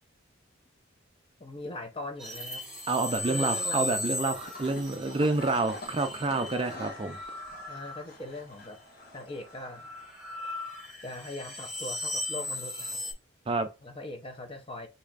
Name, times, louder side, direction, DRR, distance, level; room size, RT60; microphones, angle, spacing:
voice 1, 1.4-2.6 3.3-4.0 7.7-8.8 9.1-9.9 11.0-13.0 13.8-14.9, left 1 dB, 30° left, 0.8 m, -40 dB
sound 1, 2.2-8.5 8.9-13.1, left 2 dB, 5° right, 1.7 m, -37 dB
voice 2, 2.9-7.2 13.5-13.7, right 3 dB, 25° right, 0.5 m, -28 dB
sound 2, 4.4-10.1, left 2 dB, 45° left, 1.5 m, -46 dB
6.6 x 2.9 x 2.5 m
head